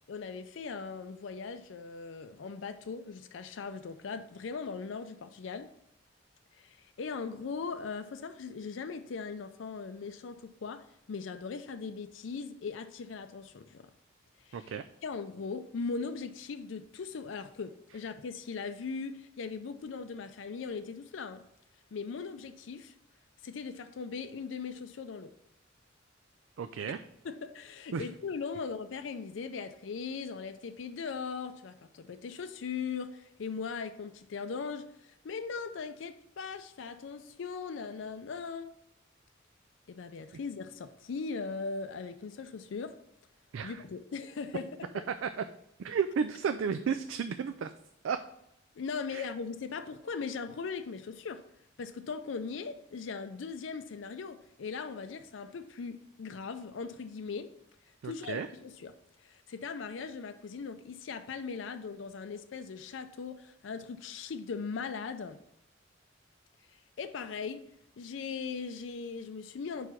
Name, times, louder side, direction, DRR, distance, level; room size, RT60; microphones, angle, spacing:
voice 1, 0.1-5.7 6.5-13.9 14.5-14.7 15.0-21.4 21.9-22.9 23.4-25.3 27.2-38.7 39.9-42.9 43.6-45.0 48.8-51.4 51.8-57.5 58.0-58.9 59.2-65.4 67.0-67.6 68.0-69.9, left 5 dB, 70° left, 0.4 m, -39 dB
voice 2, 14.5-14.8 26.6-27.0 27.9-28.0 43.5-43.8 45.2-45.4 45.8-47.7 48.0-48.2 49.1-49.2 58.0-58.5, right 6 dB, 80° right, 0.4 m, -33 dB
5.0 x 4.7 x 5.7 m
head